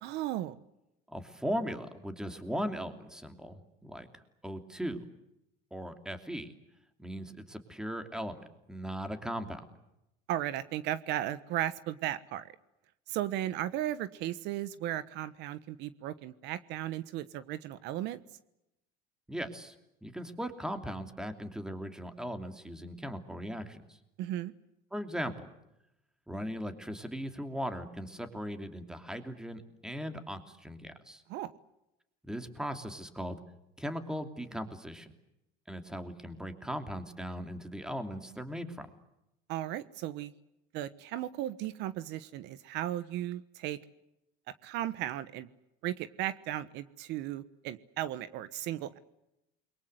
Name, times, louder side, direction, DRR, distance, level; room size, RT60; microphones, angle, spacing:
voice 1, 0.0-0.6 10.3-12.5 13.1-18.2 24.2-24.5 31.3-31.5 39.5-40.3 40.7-43.8 44.6-45.5 45.8-49.0, right 13 dB, 65° right, 15 dB, 1.2 m, -35 dB
voice 2, 1.1-5.0 5.7-6.5 7.0-8.4 8.7-9.6 19.3-19.7 20.0-23.8 24.9-25.5 26.3-31.2 32.2-33.4 33.8-35.1 35.7-38.9, equal, 5° right, 7 dB, 2.9 m, -38 dB
29.0 x 23.0 x 8.0 m, 0.88 s
cardioid pair, 135°, 19 cm